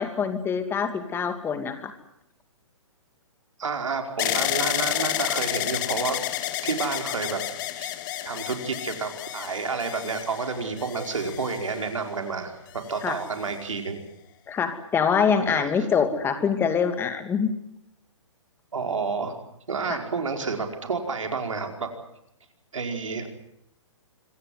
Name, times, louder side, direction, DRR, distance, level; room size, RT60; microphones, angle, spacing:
voice 1, 0.0-1.9 13.0-13.2 14.5-17.5 19.9-20.0, left 6 dB, 15° left, 9 dB, 2.5 m, -25 dB
voice 2, 3.6-6.2 6.6-7.4 7.8-7.9 8.2-12.5 12.9-14.0 15.5-15.7 18.7-19.4 19.7-21.9 22.7-23.3, right 4 dB, 80° right, 4 dB, 5.1 m, -30 dB
sound 1, 4.2-12.2 12.9-13.6, left 14 dB, 40° left, 1.7 m, -30 dB
26.5 x 16.0 x 9.6 m, 0.76 s
hypercardioid pair, 140°, 16 cm